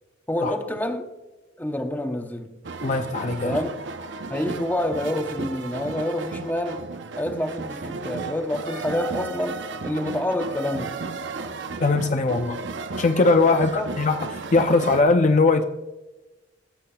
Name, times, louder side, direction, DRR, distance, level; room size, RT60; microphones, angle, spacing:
voice 1, 0.3-1.1 1.6-2.5 3.4-3.7 4.3-6.8 7.2-11.0 13.5-13.9, left 1 dB, 10° left, 0.8 m, -28 dB
sound 1, 2.6-15.0, right 3 dB, 70° right, 0.7 m, -34 dB
voice 2, 2.8-3.6 11.8-12.6 13.0-15.6, left 3 dB, 40° left, 0.5 m, -20 dB
16.0 x 8.4 x 2.3 m
head